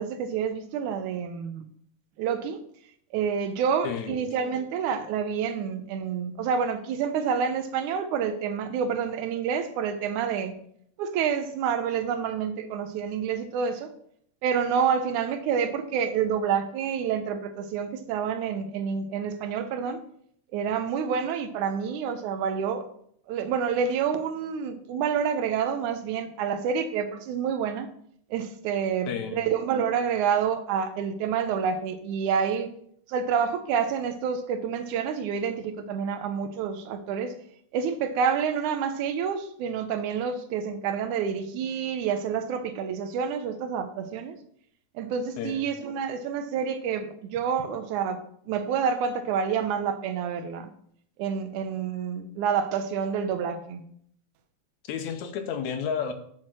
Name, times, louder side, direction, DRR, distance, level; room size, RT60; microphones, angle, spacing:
voice 1, 0.0-1.7 2.2-2.6 3.1-10.5 11.0-13.9 14.4-20.0 20.5-22.9 23.3-27.9 28.3-32.7 33.1-37.3 37.7-44.4 45.0-50.7 51.2-53.8, right 7 dB, 90° right, 2.3 m, -28 dB
voice 2, 3.8-4.2 29.1-29.5 45.4-45.6 54.9-56.1, left 7 dB, 80° left, 2.2 m, -31 dB
6.5 x 6.1 x 6.1 m
omnidirectional pair, 3.4 m